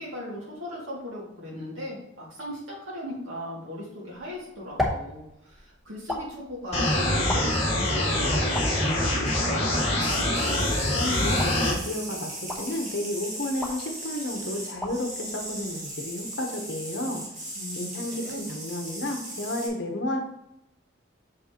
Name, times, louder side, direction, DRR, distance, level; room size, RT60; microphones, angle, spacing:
voice 1, 0.0-10.2 17.6-18.4, left 1 dB, 85° right, -4 dB, 2.4 m, -38 dB
sound 1, 4.1-16.3, left 1 dB, ahead, 0.8 m, -38 dB
sound 2, 6.7-11.7, left 1 dB, 30° left, 1.7 m, -24 dB
sound 3, 10.0-19.7, right 1 dB, 40° right, 1.8 m, -38 dB
voice 2, 10.9-17.2 17.7-20.2, left 1 dB, 60° left, 3 dB, 0.9 m, -32 dB
6.4 x 5.3 x 2.9 m, 0.86 s
head